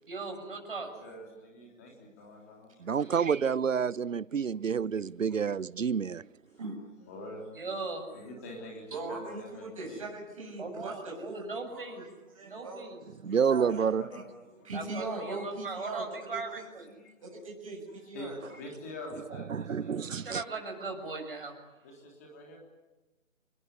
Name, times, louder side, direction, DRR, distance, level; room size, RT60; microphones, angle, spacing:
voice 1, 0.1-0.9 2.9-3.4 7.5-8.1 10.6-12.0 12.4-13.0 13.7-13.9 14.7-16.9 20.2-21.5, right 3 dB, 40° right, 6.7 m, -39 dB
voice 2, 0.8-3.0 6.5-6.6 7.0-7.6 8.1-9.0 9.2-10.1 12.1-12.2 13.3-13.4 14.1-14.8 15.3-15.4 16.9-17.1 18.1-19.9 21.8-22.6, left 1 dB, 10° left, 3.4 m, -46 dB
voice 3, 2.8-6.3 13.2-14.1 19.3-20.4, right 6 dB, 70° right, 0.8 m, -29 dB
voice 4, 8.9-11.4 11.7-12.0 12.3-12.8 13.5-13.7 14.6-16.0 16.3-16.6 17.2-18.4, right 3 dB, 25° right, 7.4 m, -39 dB
26.0 x 20.5 x 9.8 m
hypercardioid pair, 175°, 40 cm